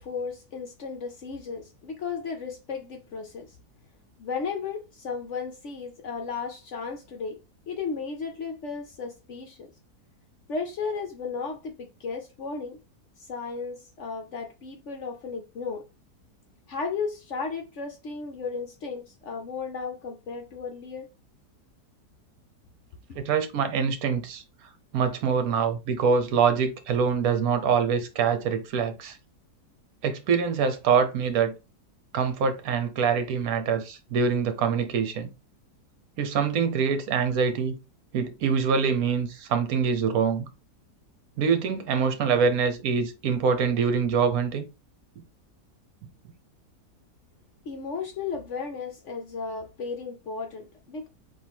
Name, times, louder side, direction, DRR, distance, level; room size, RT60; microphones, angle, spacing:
voice 1, 0.0-3.6 4.2-7.4 7.7-9.7 10.5-12.8 13.2-15.8 16.7-21.1 47.6-51.1, left 5 dB, 60° left, 0.8 m, -34 dB
voice 2, 23.1-24.4 24.9-29.2 30.0-31.5 32.1-35.3 36.2-37.7 38.1-40.5 41.4-44.7, right 6 dB, 65° right, 1.2 m, -24 dB
3.7 x 2.8 x 4.4 m
omnidirectional pair, 1.7 m